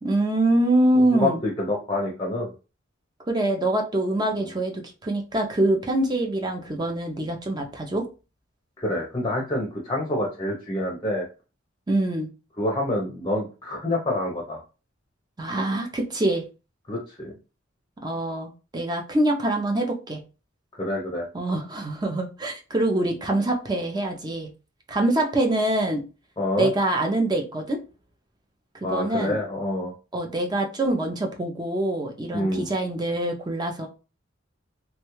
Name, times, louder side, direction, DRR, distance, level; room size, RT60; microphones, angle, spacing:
voice 1, 0.0-1.4 3.3-8.1 11.9-12.3 15.4-16.4 18.0-20.2 21.3-24.5 24.9-26.0 26.6-27.8 28.9-29.4 30.1-33.9, right 1 dB, 20° right, 3 dB, 0.5 m, -24 dB
voice 2, 1.0-2.5 4.3-4.4 8.8-11.3 12.6-14.6 16.9-17.3 20.7-21.3 26.4-26.7 28.8-29.9 32.3-32.7, left 1 dB, 25° left, -2 dB, 0.6 m, -27 dB
3.0 x 2.3 x 3.0 m, 0.32 s
head